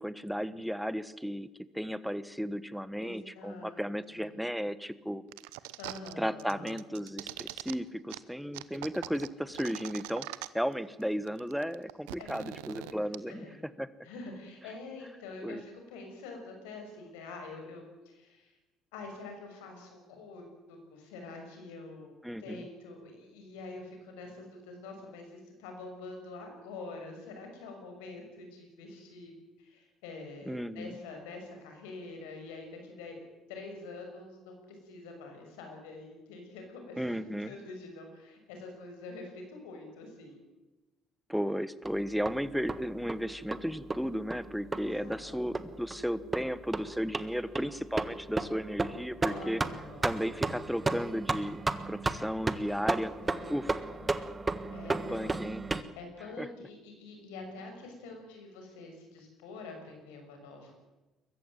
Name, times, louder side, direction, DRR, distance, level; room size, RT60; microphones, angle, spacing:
voice 1, 0.0-1.5 1.7-5.2 6.2-10.3 10.5-13.9 15.4-15.6 22.2-22.6 30.5-30.9 37.0-37.5 41.3-49.6 50.0-51.6 51.9-53.1 53.5-53.8 55.1-55.6 56.4-56.5, equal, ahead, 15 dB, 1.3 m, -34 dB
voice 2, 3.0-3.9 4.1-4.3 5.8-6.8 12.2-12.5 12.8-13.6 14.0-18.5 18.9-20.4 20.7-22.1 22.4-29.3 29.6-33.2 33.5-37.2 37.4-40.4 44.8-45.8 49.2-50.4 52.8-54.1 54.7-55.4 55.7-60.7, left 3 dB, 85° left, 4 dB, 6.4 m, -46 dB
sound 1, 5.3-6.1 6.4-7.7 8.1-8.2 8.5-10.7 11.0-11.1 11.3-13.2, right 19 dB, 85° right, 0.8 m, -42 dB
sound 2, 41.9-55.8, right 3 dB, 25° right, 1.5 m, -34 dB
22.0 x 14.5 x 9.4 m, 1.1 s
supercardioid pair, 70°, 0 cm